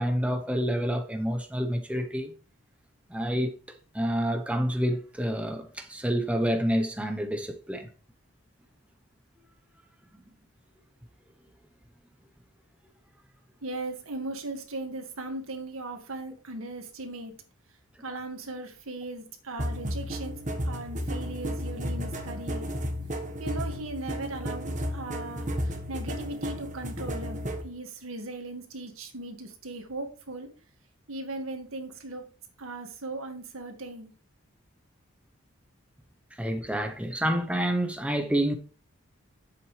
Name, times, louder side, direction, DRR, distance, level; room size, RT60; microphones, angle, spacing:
voice 1, 0.0-2.3 3.1-3.6 3.9-7.9 36.3-38.5, equal, 5° right, 0.8 m, -28 dB
voice 2, 13.6-17.4 18.0-20.4 20.6-22.7 23.4-30.5 31.1-32.2 32.6-34.1, right 2 dB, 85° right, 1.8 m, -38 dB
sound 1, 19.6-27.6, equal, 35° right, 1.3 m, -33 dB
10.0 x 7.7 x 3.2 m
head